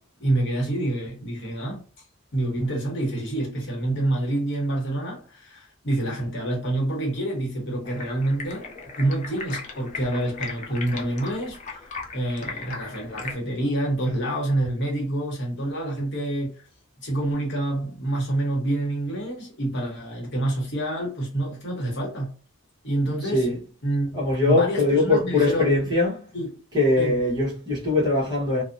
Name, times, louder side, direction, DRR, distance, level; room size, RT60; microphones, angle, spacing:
voice 1, 0.2-1.8 2.3-8.7 9.0-16.6 17.0-22.3 22.8-23.5 23.8-24.2 24.4-25.9 26.3-26.5 27.0-27.2, right 1 dB, 55° left, 0.9 m, -27 dB
Stream, 7.8-13.3, left 4 dB, 30° left, 0.4 m, -37 dB
voice 2, 24.1-26.2 26.7-28.6, left 2 dB, 20° right, 0.9 m, -21 dB
2.6 x 2.0 x 2.5 m
head